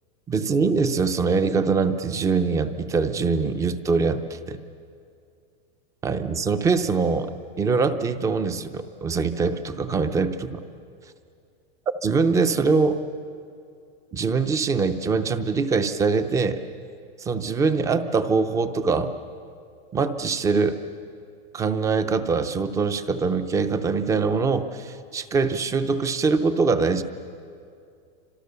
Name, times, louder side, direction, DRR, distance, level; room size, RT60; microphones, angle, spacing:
voice 1, 0.3-4.6 6.0-10.6 12.0-13.0 14.1-16.6 17.2-19.1 19.9-20.8 21.5-27.0, right 4 dB, 10° right, 10 dB, 0.6 m, -23 dB
29.5 x 26.0 x 6.8 m, 2.4 s
supercardioid pair, 170°, 32 cm